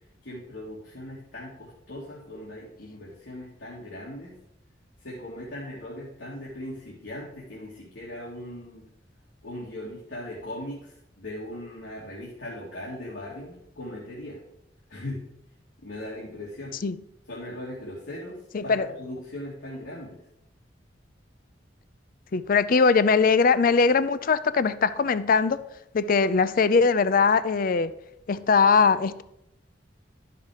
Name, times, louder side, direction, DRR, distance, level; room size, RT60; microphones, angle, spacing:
voice 1, 0.2-4.3 5.0-8.9 9.4-14.4 14.9-15.3 15.8-16.7 17.3-20.2, left 1 dB, 85° left, 2.1 m, -39 dB
voice 2, 18.5-18.9 22.3-25.6 25.9-27.9 28.3-29.2, left 5 dB, 50° left, 0.5 m, -21 dB
11.5 x 5.7 x 4.9 m
head